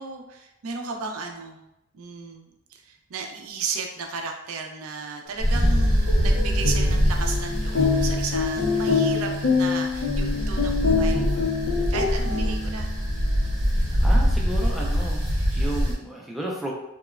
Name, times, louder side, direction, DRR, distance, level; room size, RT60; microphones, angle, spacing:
voice 1, 0.0-1.6 1.9-12.9 13.2-13.5, right 4 dB, 85° right, 3 dB, 0.4 m, -35 dB
sound 1, 5.4-13.0, left 4 dB, 60° left, 0.5 m, -26 dB
sound 2, 5.4-15.9, equal, 35° right, 0.8 m, -24 dB
voice 2, 13.8-16.7, right 1 dB, ahead, -3 dB, 0.3 m, -33 dB
2.9 x 2.0 x 2.3 m, 0.87 s
head